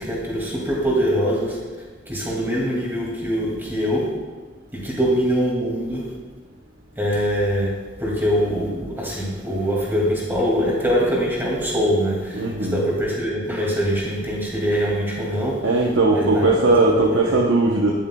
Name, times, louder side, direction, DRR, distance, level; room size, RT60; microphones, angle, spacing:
voice 1, 0.0-1.6 2.1-4.1 4.7-6.1 7.0-15.7 16.1-17.4, equal, 10° right, -4 dB, 2.1 m, -23 dB
voice 2, 12.3-12.8 15.6-18.0, right 2 dB, 75° right, -2 dB, 0.8 m, -18 dB
10.0 x 9.4 x 2.2 m, 1.4 s
head